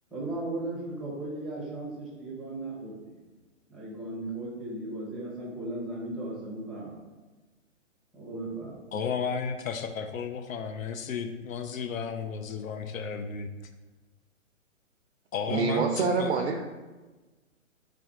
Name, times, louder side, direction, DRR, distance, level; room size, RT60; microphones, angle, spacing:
voice 1, 0.1-3.2 3.7-7.0 8.1-8.8, right 2 dB, ahead, -7 dB, 0.6 m, -36 dB
voice 2, 8.9-13.5 15.3-16.4, left 6 dB, 90° left, 7 dB, 0.5 m, -33 dB
voice 3, 15.5-16.6, right 5 dB, 55° right, 3 dB, 0.5 m, -26 dB
3.4 x 2.5 x 4.4 m, 1.2 s
hypercardioid pair, 135°, 39 cm